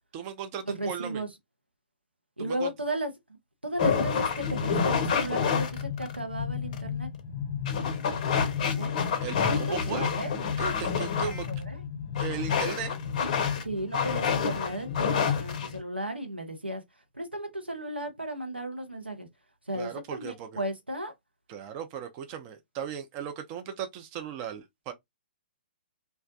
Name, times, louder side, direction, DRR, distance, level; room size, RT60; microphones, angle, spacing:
voice 1, 0.1-1.2 2.4-2.7 9.2-10.1 10.6-11.5 12.2-13.0 19.7-20.6 21.5-24.9, right 8 dB, 30° right, 0.4 m, -37 dB
voice 2, 0.7-1.3 2.4-3.1 3.6-7.1 8.8-8.9 9.5-10.3 11.7-11.8 13.6-16.8 17.2-19.3 19.7-21.1, right 1 dB, 90° right, 0.7 m, -35 dB
sound 1, 3.8-15.8, left 6 dB, 40° left, 0.5 m, -28 dB
2.3 x 2.1 x 2.6 m
figure-of-eight pair, 120°, 6 cm